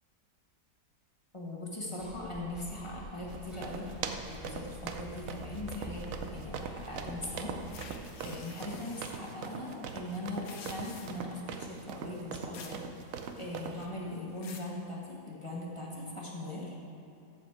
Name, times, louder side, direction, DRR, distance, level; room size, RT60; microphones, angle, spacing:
voice 1, 1.3-3.9 4.3-6.0 6.3-7.9 8.2-12.8 13.4-16.7, left 1 dB, 20° left, -4 dB, 1.2 m, -40 dB
sound 1, 2.0-8.0, equal, ahead, 1.1 m, -47 dB
sound 2, 3.3-13.9, right 6 dB, 65° right, 0.9 m, -41 dB
sound 3, 7.7-9.3 10.3-11.3 12.5-12.8 13.2-13.7 14.1-14.7, left 5 dB, 60° left, 1.2 m, -49 dB
14.0 x 5.2 x 4.7 m, 2.6 s
omnidirectional pair, 1.8 m